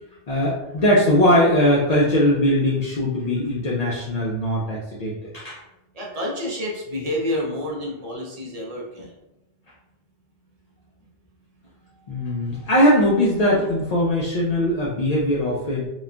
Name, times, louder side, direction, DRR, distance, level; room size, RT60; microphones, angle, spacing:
voice 1, 0.3-5.6 12.1-15.9, left 1 dB, 60° left, -5 dB, 0.4 m, -20 dB
voice 2, 5.9-9.1, left 1 dB, 50° right, -3 dB, 0.5 m, -29 dB
3.0 x 2.1 x 2.4 m, 0.92 s
omnidirectional pair, 1.2 m